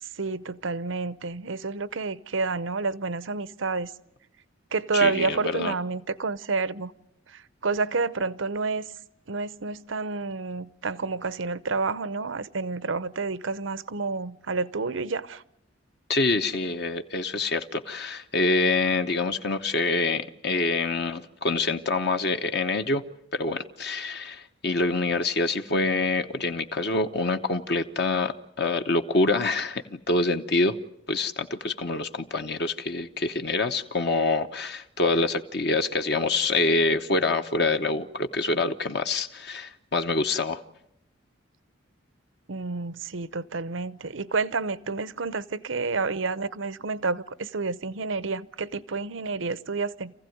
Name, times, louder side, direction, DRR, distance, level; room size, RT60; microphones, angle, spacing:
voice 1, 0.0-3.9 4.7-6.9 7.3-8.9 9.3-15.4 42.5-50.1, right 4 dB, 85° right, 0.8 m, -29 dB
voice 2, 4.9-5.7 16.1-23.0 23.3-30.8 31.1-40.6, left 3 dB, 60° left, 1.0 m, -26 dB
28.0 x 15.5 x 9.3 m
head